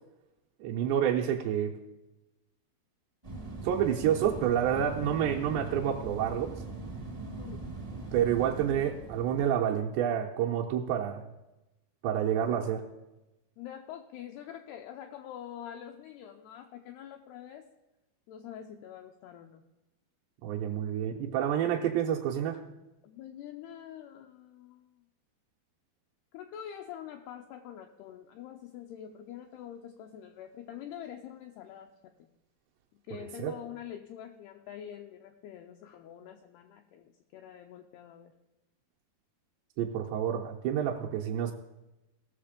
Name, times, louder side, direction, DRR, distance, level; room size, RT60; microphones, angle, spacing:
voice 1, 0.6-1.7 3.6-6.5 8.1-11.2 12.0-12.8 20.4-22.6 33.1-33.5 39.8-41.5, right 9 dB, 80° right, 0 dB, 2.8 m, -29 dB
sound 1, 3.2-9.5, right 3 dB, 50° right, 0.3 m, -41 dB
voice 2, 13.6-17.7 18.3-19.6 23.0-25.0 26.3-32.3 33.1-38.3, left 10 dB, 85° left, 5 dB, 2.3 m, -45 dB
17.5 x 6.6 x 5.1 m, 0.98 s
omnidirectional pair, 5.2 m